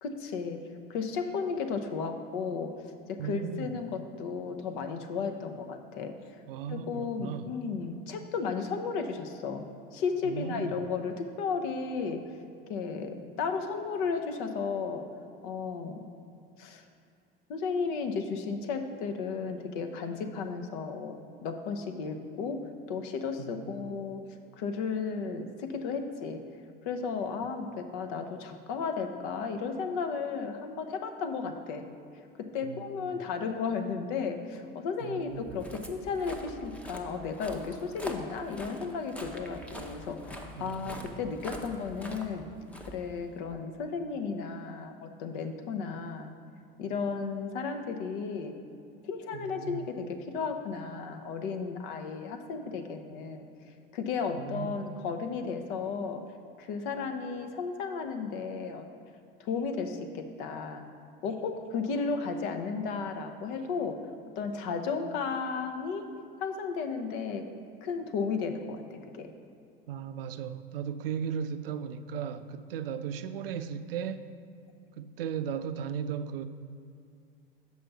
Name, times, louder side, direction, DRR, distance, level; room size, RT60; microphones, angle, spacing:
voice 1, 0.0-0.6 0.9-2.7 3.1-6.4 6.7-12.2 12.7-15.1 15.4-16.0 16.6-16.9 17.5-24.2 24.5-26.4 26.8-31.9 32.4-42.5 42.9-46.3 46.8-48.6 49.0-53.5 53.9-56.2 56.6-58.9 59.4-60.9 61.2-64.0 64.4-66.1 66.4-67.5 67.8-69.3, left 5 dB, 55° left, 7 dB, 0.8 m, -34 dB
voice 2, 3.2-3.7 6.5-7.5 10.2-10.8 23.4-23.8 32.6-33.1 35.0-35.4 40.6-41.1 49.3-49.8 54.3-54.8 69.9-74.3 75.0-76.5, right 7 dB, 70° right, 11 dB, 0.5 m, -36 dB
Walk footsteps, 35.3-43.6, equal, 5° left, 0.7 m, -44 dB
7.4 x 5.6 x 4.6 m, 2.4 s
figure-of-eight pair, 75°, 29 cm